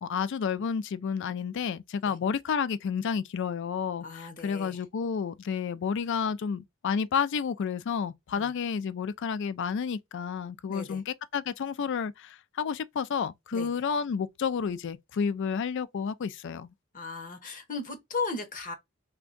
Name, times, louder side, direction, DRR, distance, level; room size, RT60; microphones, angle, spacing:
voice 1, 0.0-4.0 4.4-16.7, left 6 dB, 60° left, 0.4 m, -30 dB
voice 2, 4.0-4.8 8.3-8.5 10.7-11.0 13.5-13.8 16.9-18.7, left 3 dB, 40° left, 0.7 m, -36 dB
3.4 x 2.2 x 3.7 m
head